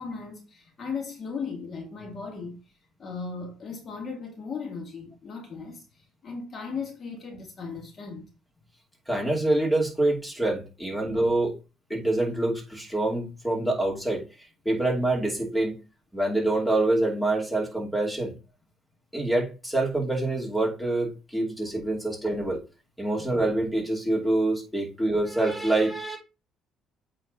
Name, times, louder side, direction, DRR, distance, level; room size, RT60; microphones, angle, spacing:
voice 1, 0.0-2.6 3.0-8.3, left 5 dB, 40° left, 2.2 m, -37 dB
voice 2, 9.1-11.6 11.9-14.2 14.6-15.8 16.1-18.3 19.1-22.6 23.0-26.2, right 2 dB, 5° left, 2.6 m, -26 dB
8.6 x 3.7 x 3.9 m
cardioid pair, 105°, 0 cm